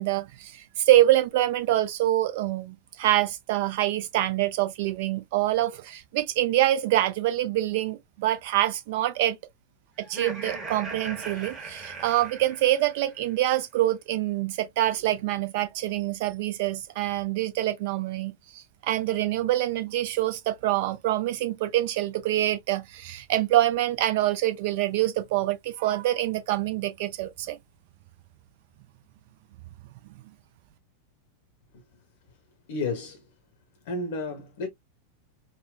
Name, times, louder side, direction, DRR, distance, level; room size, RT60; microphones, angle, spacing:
voice 1, 0.0-9.4 10.1-27.6, right 14 dB, 50° right, 0.5 m, -25 dB
Laughter, 10.0-13.2, right 3 dB, 25° right, 1.3 m, -39 dB
voice 2, 32.7-33.3 33.8-34.7, left 3 dB, 55° left, 0.7 m, -32 dB
3.8 x 2.1 x 2.3 m
figure-of-eight pair, 90°, 0 cm